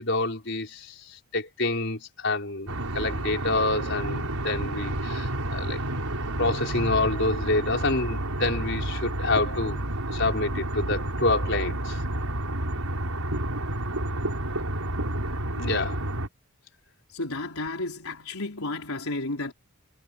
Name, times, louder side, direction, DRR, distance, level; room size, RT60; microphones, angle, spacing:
voice 1, 0.0-5.8 6.4-9.8 10.1-12.0 15.6-16.0, left 2 dB, 55° left, 5.4 m, -27 dB
sound 1, 2.7-16.3, right 1 dB, 90° right, 5.3 m, -30 dB
voice 2, 17.1-19.5, left 2 dB, 80° left, 4.2 m, -32 dB
head